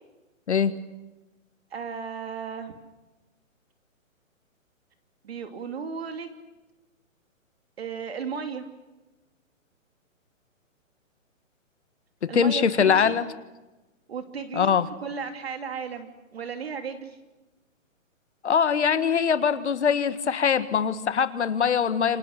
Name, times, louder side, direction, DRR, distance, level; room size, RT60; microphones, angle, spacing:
voice 1, 1.7-2.7 5.2-6.3 7.8-8.7 12.3-13.2 14.1-17.2 22.1-22.2, right 6 dB, 50° right, 7 dB, 2.8 m, -35 dB
voice 2, 12.2-13.3 14.5-14.9 18.4-22.2, left 7 dB, 55° left, 12 dB, 1.7 m, -22 dB
28.5 x 26.5 x 6.6 m, 1.1 s
hypercardioid pair, 180°, 40 cm